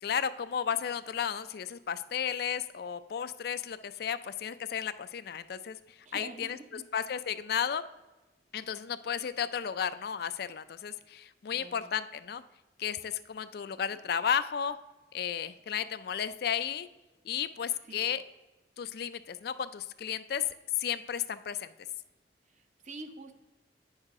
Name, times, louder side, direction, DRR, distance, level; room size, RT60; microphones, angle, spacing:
voice 1, 0.0-7.8 8.5-12.4 12.8-14.8 15.1-16.9 17.2-18.2 18.8-20.4 20.8-21.7, left 8 dB, 60° left, 12 dB, 0.4 m, -33 dB
voice 2, 6.0-6.8 11.5-11.9 17.9-18.1 22.5-23.3, right 2 dB, 40° right, 6 dB, 0.8 m, -46 dB
8.9 x 6.5 x 3.6 m, 1.1 s
head